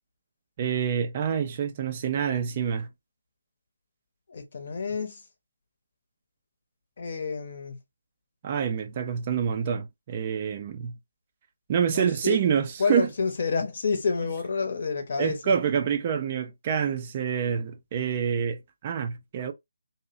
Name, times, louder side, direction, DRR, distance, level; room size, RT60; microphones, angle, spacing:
voice 1, 0.6-2.9 8.4-11.0 11.7-13.1 15.2-19.5, right 7 dB, 30° right, 0.3 m, -27 dB
voice 2, 4.3-5.2 7.0-7.8 11.9-12.4 12.8-15.5, left 4 dB, 45° left, 0.7 m, -29 dB
2.6 x 2.0 x 2.4 m
figure-of-eight pair, 150°, 0 cm